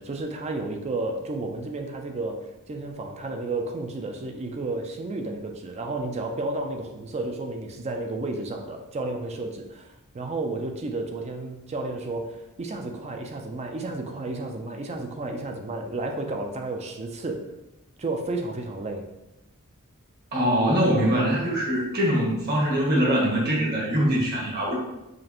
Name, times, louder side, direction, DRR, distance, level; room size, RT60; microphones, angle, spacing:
voice 1, 0.0-17.5 18.0-19.1, right 2 dB, 30° right, 4 dB, 0.4 m, -32 dB
voice 2, 20.3-24.7, equal, 45° right, -3 dB, 1.3 m, -23 dB
5.0 x 2.5 x 2.9 m, 0.94 s
head